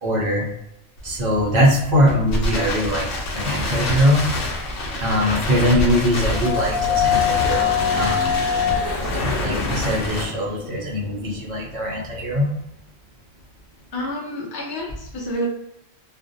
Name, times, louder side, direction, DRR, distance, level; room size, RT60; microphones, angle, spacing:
voice 1, 0.0-0.5 1.0-4.3 5.0-8.3 9.1-12.5, equal, 50° right, -3 dB, 0.5 m, -21 dB
Crackle, 1.0-10.2, left 1 dB, 65° left, 1.0 m, -27 dB
sound 1, 5.5-11.4, left 8 dB, 90° left, 1.0 m, -24 dB
voice 2, 13.9-15.5, equal, 30° left, -5 dB, 0.4 m, -29 dB
2.5 x 2.1 x 2.6 m, 0.82 s
omnidirectional pair, 1.4 m